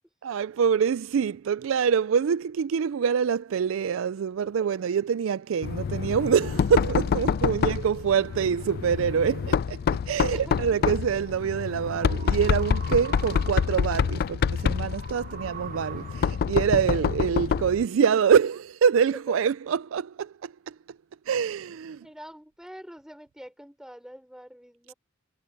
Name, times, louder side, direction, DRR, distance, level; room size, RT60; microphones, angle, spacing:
voice 1, 0.2-20.8 21.3-22.1, right 7 dB, 75° right, 0.4 m, -25 dB
Knock, 5.6-17.8, left 6 dB, 50° left, 0.3 m, -27 dB
voice 2, 10.1-10.6 22.0-24.9, equal, 5° right, 4.6 m, -45 dB
sound 1, 11.0-16.7, right 5 dB, 40° right, 1.3 m, -44 dB
head